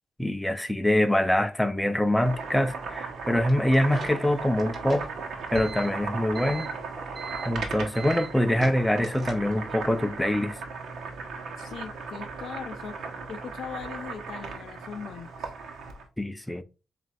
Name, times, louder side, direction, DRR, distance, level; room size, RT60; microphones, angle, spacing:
voice 1, 0.2-5.0 5.5-6.7 7.5-10.6 16.2-16.6, left 1 dB, 5° left, 0.5 m, -24 dB
Boiling, 2.0-16.1, right 4 dB, 80° right, 1.0 m, -37 dB
sound 1, 3.5-9.7, right 3 dB, 45° right, 1.3 m, -41 dB
voice 2, 11.6-13.0 13.3-15.5, left 7 dB, 70° left, 0.4 m, -39 dB
7.3 x 2.6 x 2.4 m
cardioid pair, 90°, 0 cm